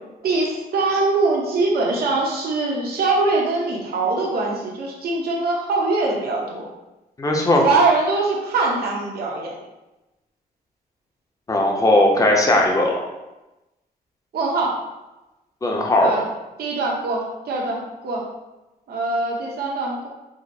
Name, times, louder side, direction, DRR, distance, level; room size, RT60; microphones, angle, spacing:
voice 1, 0.2-6.6 7.6-9.5 14.3-14.8 16.0-16.2 16.6-18.3 18.9-20.1, right 3 dB, 75° right, -2 dB, 0.9 m, -22 dB
voice 2, 7.2-7.6 11.5-13.0 15.6-16.1, left 1 dB, 20° left, 0 dB, 0.6 m, -18 dB
4.9 x 2.0 x 4.1 m, 1.0 s
wide cardioid pair, 160°, 16 cm